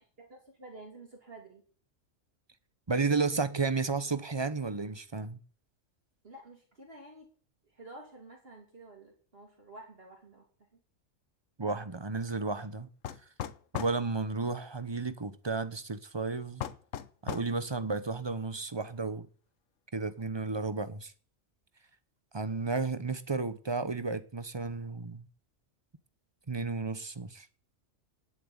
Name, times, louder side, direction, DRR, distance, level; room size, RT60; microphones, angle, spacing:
voice 1, 0.2-1.6 6.2-7.3 7.7-10.4 10.7-10.8, right 2 dB, 45° right, 3.2 m, -50 dB
voice 2, 2.9-5.4 11.6-12.9 13.7-16.6 17.2-19.3 19.9-21.1 22.3-25.3 26.5-27.5, right 4 dB, 25° right, 0.8 m, -32 dB
sound 1, 13.0-14.0 16.6-17.5, left 10 dB, 75° left, 1.2 m, -37 dB
10.0 x 7.8 x 9.6 m
omnidirectional pair, 1.4 m